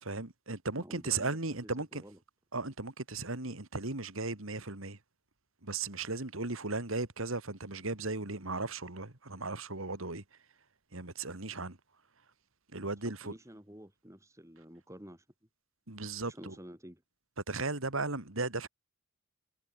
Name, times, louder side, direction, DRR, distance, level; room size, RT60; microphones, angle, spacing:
voice 1, 0.0-2.0 2.5-5.0 5.6-10.2 10.9-11.8 12.7-13.3 15.9-16.5 17.5-18.7, right 3 dB, 65° right, 2.5 m, -36 dB
voice 2, 0.8-2.2 12.8-12.9 13.2-15.3 16.3-17.0, equal, 15° right, 7.0 m, -50 dB
head